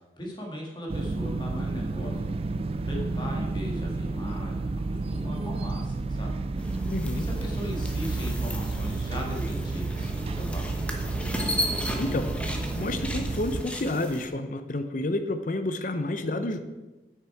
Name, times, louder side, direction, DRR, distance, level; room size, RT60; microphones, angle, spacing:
voice 1, 0.2-2.2 2.9-4.5 4.9-6.3 7.1-10.7, left 1 dB, 25° left, -1 dB, 1.8 m, -38 dB
sound 1, 0.9-13.6, right 3 dB, 35° right, 0.3 m, -31 dB
sound 2, 6.6-14.3, equal, 5° left, 0.9 m, -35 dB
voice 2, 6.9-7.3 12.0-12.3 12.8-16.6, left 2 dB, 45° left, 9 dB, 0.7 m, -30 dB
9.0 x 6.6 x 4.7 m, 1.1 s
head